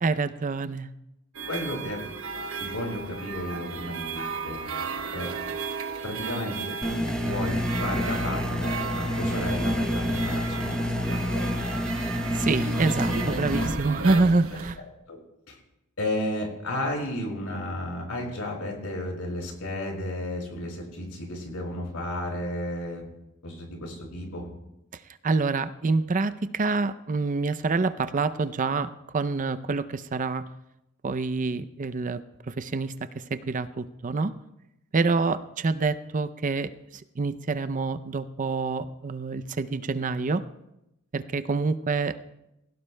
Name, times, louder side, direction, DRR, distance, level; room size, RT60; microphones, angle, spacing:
voice 1, 0.0-0.9 12.3-14.8 25.2-30.4 31.0-32.2 32.5-32.9 33.3-34.3 34.9-40.4 41.1-42.2, right 3 dB, 40° right, 12 dB, 0.5 m, -27 dB
sound 1, 1.3-14.7, right 4 dB, 70° right, 1.0 m, -34 dB
voice 2, 1.5-2.1 2.6-4.6 5.1-5.3 6.0-6.5 6.8-11.2 14.0-14.3 14.8-15.2 15.5-15.6 16.0-23.0 23.4-24.5, left 1 dB, 85° left, 1 dB, 4.5 m, -33 dB
sound 2, 6.8-13.7, left 1 dB, 5° left, 0.7 m, -28 dB
20.0 x 17.0 x 2.2 m, 0.88 s
head